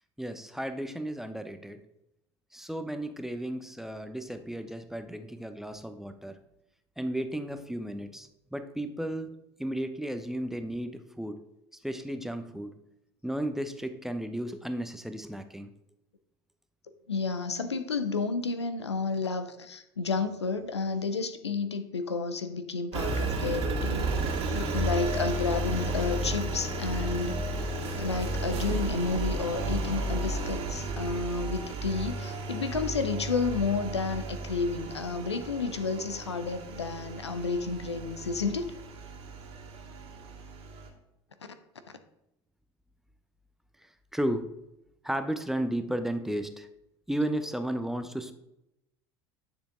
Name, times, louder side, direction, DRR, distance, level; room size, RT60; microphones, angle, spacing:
voice 1, 0.2-1.8 2.5-6.4 7.0-11.4 11.8-12.8 13.2-15.7 44.1-44.5 45.0-46.7 47.1-48.3, right 1 dB, 5° right, 8 dB, 0.8 m, -34 dB
voice 2, 17.1-24.1 24.5-27.4 28.0-38.7 41.4-41.6, left 4 dB, 90° left, 10 dB, 0.6 m, -31 dB
Engine, 22.9-40.9, right 2 dB, 50° right, 2.2 m, -33 dB
sound 1, 27.8-33.6, right 4 dB, 65° right, 2.3 m, -42 dB
9.6 x 6.8 x 3.7 m, 0.86 s
figure-of-eight pair, 65°, 14 cm